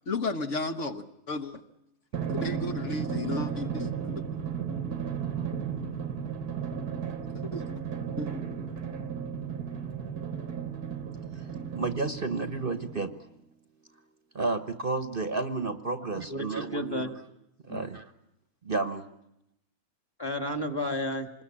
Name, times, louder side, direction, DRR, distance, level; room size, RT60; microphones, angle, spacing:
voice 1, 0.1-1.6 2.3-4.4 7.3-7.6 8.2-8.3, left 3 dB, 55° left, 6 dB, 1.4 m, -34 dB
Drum, 2.1-13.2, right 7 dB, 90° right, 1.9 m, -34 dB
voice 2, 11.7-13.1 14.3-17.1 17.6-18.0 18.6-19.0, right 3 dB, 40° right, 10 dB, 1.2 m, -31 dB
voice 3, 16.1-17.1 17.7-17.9 20.2-21.3, left 1 dB, 15° left, 8 dB, 1.8 m, -32 dB
26.5 x 21.0 x 8.7 m, 0.84 s
omnidirectional pair, 1.6 m